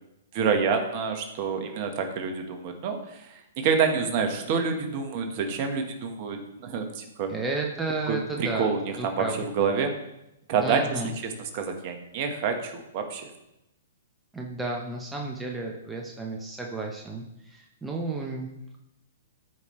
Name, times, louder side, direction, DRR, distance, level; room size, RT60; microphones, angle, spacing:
voice 1, 0.3-7.3 8.1-9.9 10.5-13.3, right 5 dB, 45° right, 5 dB, 1.5 m, -28 dB
voice 2, 7.3-8.7 9.0-9.5 10.6-11.1 14.3-18.5, right 3 dB, 10° right, 0 dB, 1.0 m, -32 dB
13.5 x 5.2 x 3.3 m, 0.87 s
hypercardioid pair, 125°, 0 cm